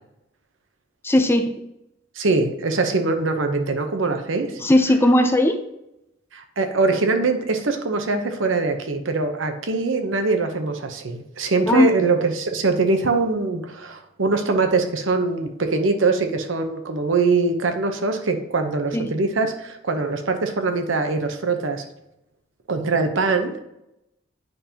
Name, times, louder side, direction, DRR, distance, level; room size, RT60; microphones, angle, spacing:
voice 1, 1.0-1.5 4.6-5.6 11.7-11.9 18.9-19.1, left 1 dB, 10° left, 7 dB, 0.5 m, -17 dB
voice 2, 2.2-4.6 6.3-21.8 22.7-23.6, right 3 dB, 80° right, 6 dB, 0.9 m, -22 dB
9.2 x 5.4 x 2.9 m, 0.87 s
head